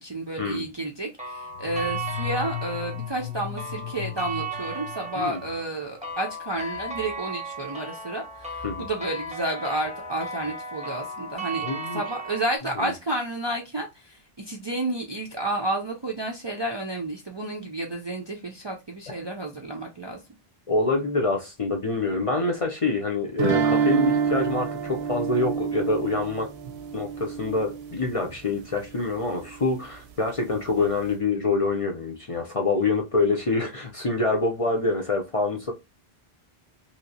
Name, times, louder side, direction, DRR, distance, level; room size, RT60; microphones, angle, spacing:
voice 1, 0.0-11.6 11.9-20.2, right 1 dB, 40° right, 0.4 m, -31 dB
sound 1, 1.2-12.6, right 3 dB, 10° right, 0.7 m, -36 dB
sound 2, 1.5-5.6, left 13 dB, 70° left, 0.8 m, -36 dB
voice 2, 11.6-12.0 12.8-12.9 19.1-19.2 20.7-26.5 26.9-35.7, left 3 dB, 45° left, 0.5 m, -26 dB
sound 3, 23.4-28.3, right 6 dB, 90° right, 0.8 m, -27 dB
3.1 x 2.8 x 2.7 m
omnidirectional pair, 1.0 m